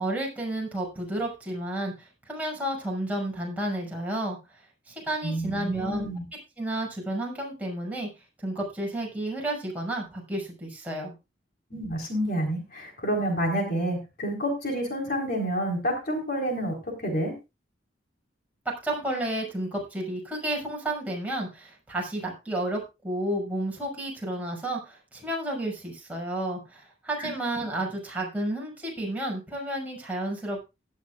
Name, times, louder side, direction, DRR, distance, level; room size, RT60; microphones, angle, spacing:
voice 1, 0.0-4.4 4.9-6.1 6.6-8.1 8.4-11.1 18.8-30.6, right 1 dB, 10° right, -2 dB, 6.4 m, -31 dB
voice 2, 5.2-6.2 11.7-17.3 27.2-27.3, right 1 dB, 50° left, 1 dB, 4.1 m, -29 dB
17.0 x 12.0 x 2.5 m, 0.26 s
head